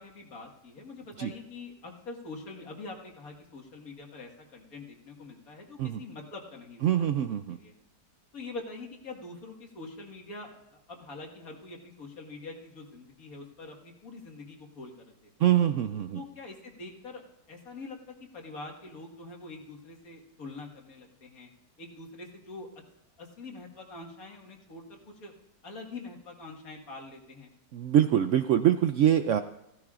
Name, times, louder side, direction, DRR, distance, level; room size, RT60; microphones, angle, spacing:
voice 1, 0.0-7.1 7.5-7.7 8.3-10.5 10.9-15.1 16.1-17.2 17.5-21.5 21.8-22.7 23.2-25.3 25.6-27.5, left 3 dB, 60° left, 2 dB, 2.1 m, -44 dB
voice 2, 6.8-7.6 15.4-16.2 27.7-29.4, right 10 dB, 75° right, 9 dB, 0.7 m, -24 dB
15.5 x 14.5 x 2.5 m, 0.85 s
omnidirectional pair, 1.8 m